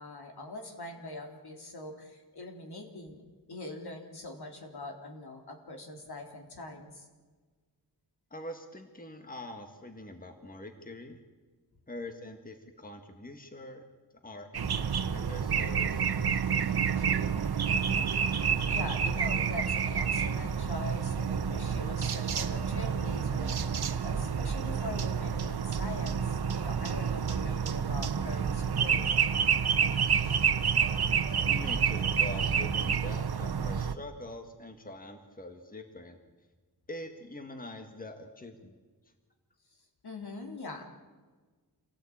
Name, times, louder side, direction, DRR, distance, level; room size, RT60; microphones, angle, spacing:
voice 1, 0.0-3.2 3.5-7.1 17.7-23.5 24.0-29.1 40.0-40.8, left 2 dB, 70° left, 3 dB, 3.7 m, -43 dB
voice 2, 8.3-11.2 11.9-13.8 14.2-17.2 31.4-36.2 36.9-38.8, left 1 dB, 20° left, 6 dB, 1.8 m, -44 dB
sound 1, 14.5-33.9, right 7 dB, 65° right, 1.2 m, -29 dB
27.5 x 17.5 x 8.8 m, 1.4 s
wide cardioid pair, 140°, 40 cm